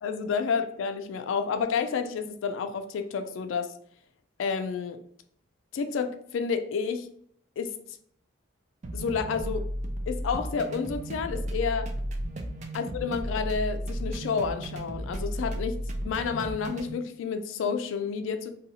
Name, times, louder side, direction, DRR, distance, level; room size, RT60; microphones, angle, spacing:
voice 1, 0.0-3.7 4.4-5.0 5.7-7.1 7.6-7.7 8.9-9.7 10.1-11.9 12.7-15.8 16.0-18.5, left 5 dB, 75° left, 0.3 m, -30 dB
sound 1, 8.8-16.9, equal, 35° right, 0.3 m, -34 dB
2.7 x 2.2 x 2.7 m
head